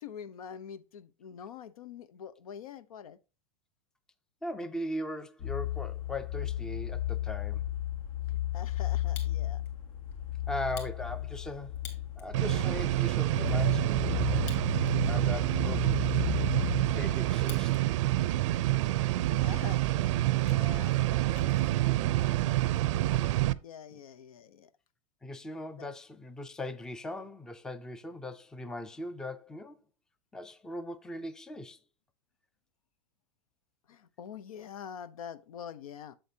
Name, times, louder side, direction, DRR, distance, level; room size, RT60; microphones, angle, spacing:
voice 1, 0.0-3.2 8.3-9.6 19.4-19.8 20.3-21.2 23.6-24.7 25.7-25.9 33.9-36.2, left 8 dB, 85° left, 0.8 m, -45 dB
voice 2, 4.4-7.7 10.5-11.8 12.2-14.5 15.1-16.5 16.9-17.7 23.9-24.0 25.2-29.8 30.3-31.8, left 1 dB, 5° left, 0.4 m, -39 dB
sound 1, 5.4-17.0, left 13 dB, 70° left, 1.4 m, -34 dB
Fire, 8.9-9.7 10.1-10.2 10.6-12.3 12.8-12.9 13.1-13.6 14.3-15.1 15.4-15.5 16.1-17.8 18.1-18.6 19.2-19.3 19.5-19.7 20.0-21.7, left 7 dB, 40° left, 2.7 m, -51 dB
sound 2, 12.3-23.5, right 16 dB, 60° right, 0.5 m, -27 dB
7.8 x 7.8 x 2.8 m
supercardioid pair, 145°, 18 cm